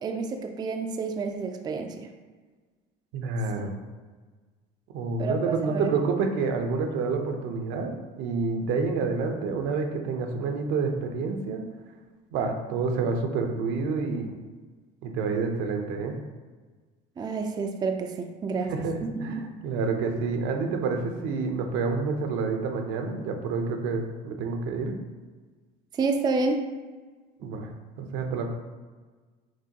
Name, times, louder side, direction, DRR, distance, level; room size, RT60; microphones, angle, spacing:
voice 1, 0.0-2.1 5.2-5.9 17.2-18.7 19.2-19.5 26.0-26.6, right 4 dB, 20° right, 4 dB, 0.3 m, -29 dB
voice 2, 3.1-3.8 4.9-11.6 12.3-14.3 15.0-16.2 18.7-25.0 27.4-27.7 28.0-28.5, right 4 dB, 75° right, 4 dB, 0.7 m, -28 dB
6.0 x 2.2 x 2.9 m, 1.4 s
supercardioid pair, 105°, 21 cm